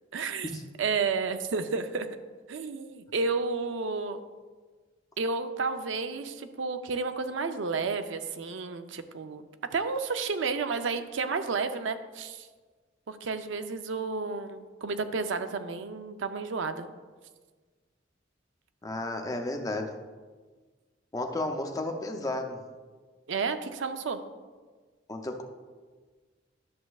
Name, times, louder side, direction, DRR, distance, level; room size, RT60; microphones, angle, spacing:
voice 1, 0.1-2.1 2.5-4.2 5.2-9.5 9.7-12.5 13.1-16.9 23.3-24.2, right 4 dB, 70° right, 9 dB, 0.5 m, -31 dB
voice 2, 18.8-20.0 21.1-22.6 25.1-25.4, left 2 dB, 20° left, 4 dB, 0.5 m, -33 dB
11.0 x 7.0 x 2.3 m, 1.4 s
head